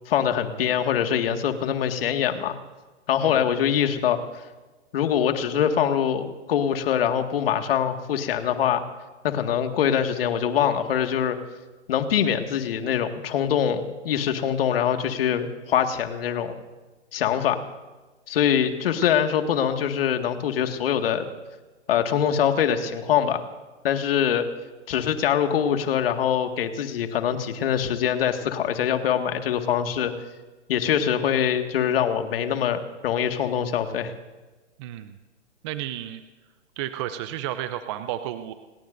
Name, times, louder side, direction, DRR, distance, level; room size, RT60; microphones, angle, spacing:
voice 1, 0.1-2.6 3.1-4.2 4.9-8.8 9.2-11.4 11.9-16.5 17.1-17.6 18.3-21.3 21.9-23.4 23.8-24.4 24.9-30.1 30.7-34.1, left 9 dB, 50° left, 6 dB, 2.0 m, -23 dB
voice 2, 34.8-35.2 35.6-36.2 36.8-38.5, right 12 dB, 25° right, 10 dB, 0.6 m, -32 dB
28.5 x 19.0 x 2.6 m, 1.2 s
hypercardioid pair, 140°, 36 cm